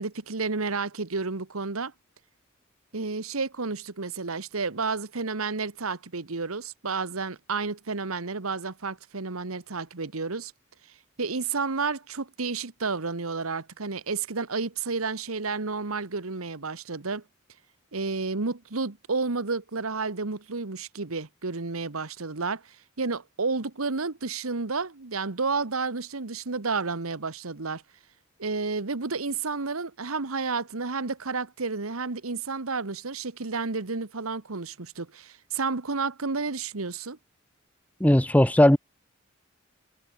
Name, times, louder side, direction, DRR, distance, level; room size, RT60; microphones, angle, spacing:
voice 1, 0.0-1.9 2.9-10.5 11.2-17.2 17.9-27.8 28.4-37.2, right 4 dB, 80° right, 1.4 m, -31 dB
voice 2, 38.0-38.8, left 1 dB, 5° left, 0.9 m, -17 dB
head